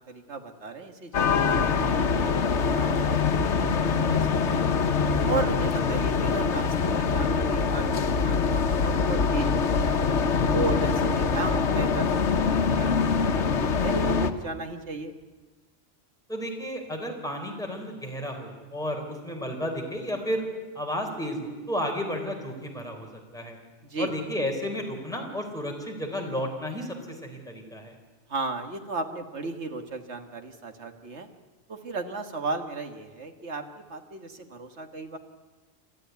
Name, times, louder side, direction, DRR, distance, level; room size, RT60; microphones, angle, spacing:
voice 1, 0.1-4.7 5.2-10.0 10.5-12.1 12.4-15.1 23.8-24.1 28.3-31.3 31.7-35.2, right 3 dB, 80° right, 6 dB, 2.0 m, -35 dB
sound 1, 1.1-14.3, left 5 dB, 85° left, 1.4 m, -24 dB
voice 2, 16.3-20.4 20.7-23.1 23.3-23.6 24.0-27.9, equal, 5° left, 1 dB, 4.0 m, -32 dB
29.0 x 13.0 x 9.4 m, 1.3 s
omnidirectional pair, 1.2 m